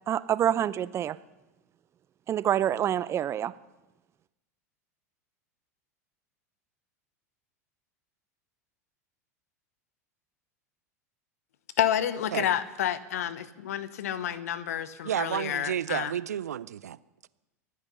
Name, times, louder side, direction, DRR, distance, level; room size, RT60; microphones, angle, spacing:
voice 1, 0.1-1.2 2.3-3.5, right 10 dB, 30° right, 17 dB, 0.6 m, -26 dB
voice 2, 11.8-16.1, left 10 dB, 70° left, 16 dB, 1.0 m, -29 dB
voice 3, 15.0-17.0 17.2-17.3, right 10 dB, 80° right, 19 dB, 0.5 m, -31 dB
23.0 x 9.6 x 5.8 m, 1.1 s
figure-of-eight pair, 85°, 9 cm